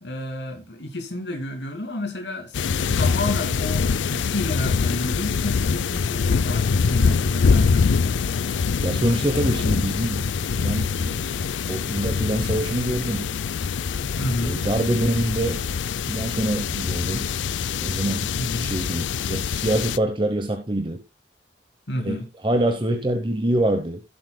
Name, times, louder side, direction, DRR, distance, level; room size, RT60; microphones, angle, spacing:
voice 1, 0.0-8.2 14.2-14.6 18.3-18.7 21.9-22.3, left 1 dB, 70° left, 2.3 m, -31 dB
sound 1, 2.5-20.0, left 5 dB, 90° left, 0.4 m, -24 dB
voice 2, 8.8-11.3 11.7-13.3 14.4-15.7 16.1-17.3 17.8-18.3 18.6-21.0 22.0-24.0, right 1 dB, 25° right, 0.9 m, -25 dB
17.0 x 7.7 x 2.2 m
head